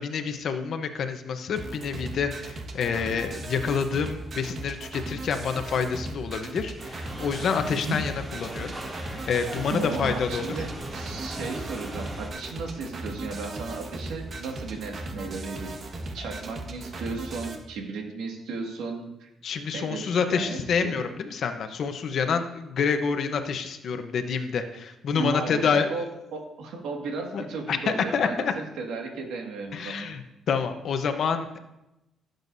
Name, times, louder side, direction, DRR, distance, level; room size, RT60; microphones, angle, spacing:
voice 1, 0.0-8.7 9.0-10.5 19.4-25.9 27.3-27.8 28.1-28.5 29.7-30.2 30.5-31.6, left 6 dB, 65° left, 7 dB, 1.0 m, -28 dB
sound 1, 1.6-17.6, right 2 dB, 50° right, 1.6 m, -37 dB
sound 2, 6.8-12.3, right 1 dB, 20° right, 2.6 m, -40 dB
voice 2, 7.7-8.0 9.7-15.7 16.1-19.3 19.7-21.0 25.1-30.1, right 3 dB, 85° right, 1 dB, 2.0 m, -35 dB
16.5 x 8.0 x 2.7 m, 0.92 s
cardioid pair, 90°, 0 cm